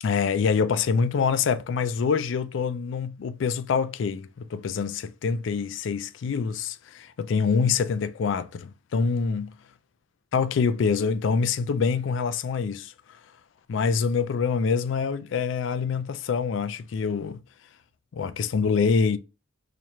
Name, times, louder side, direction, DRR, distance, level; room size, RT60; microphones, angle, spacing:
voice 1, 0.0-9.5 10.3-12.9 13.7-17.4 18.1-19.2, left 5 dB, 70° left, 0.3 m, -25 dB
3.0 x 2.4 x 4.2 m
head